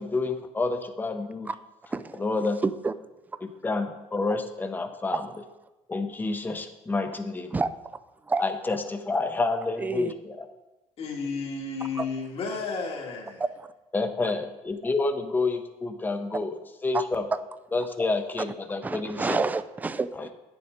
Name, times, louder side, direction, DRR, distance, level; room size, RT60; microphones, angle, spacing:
voice 1, 0.0-1.5 2.2-2.6 3.4-5.2 5.9-7.5 8.4-10.5 13.9-16.5 16.8-17.2 17.7-19.4 20.2-20.3, left 3 dB, 15° left, 6 dB, 0.7 m, -29 dB
voice 2, 1.9-2.2 2.6-2.9 5.1-5.3 7.5-7.7 8.2-8.4 9.8-10.1 11.9-12.1 13.6-13.7 14.2-14.3 16.9-17.0 17.3-17.4 18.8-20.3, right 4 dB, 15° right, 12 dB, 0.3 m, -28 dB
voice 3, 11.0-13.4, left 4 dB, 50° left, -1 dB, 1.6 m, -32 dB
9.3 x 7.1 x 4.9 m, 1.1 s
cardioid pair, 125°, 13 cm